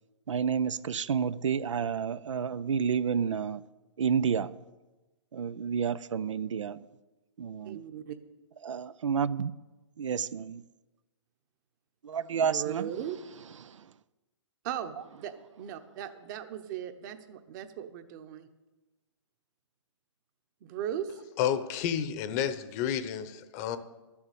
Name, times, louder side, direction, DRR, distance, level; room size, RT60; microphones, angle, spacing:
voice 1, 0.3-3.6 4.0-4.6 5.3-6.9 7.4-7.8 8.6-9.5 10.0-10.6 12.0-12.9 13.6-13.9, right 7 dB, 85° right, 0.5 m, -30 dB
voice 2, 7.6-8.2 12.4-13.2 14.6-18.5 20.6-21.2, right 10 dB, 40° right, 1.1 m, -38 dB
voice 3, 21.4-23.8, left 9 dB, 35° left, 0.9 m, -30 dB
12.0 x 7.1 x 8.5 m
hypercardioid pair, 140°, 15 cm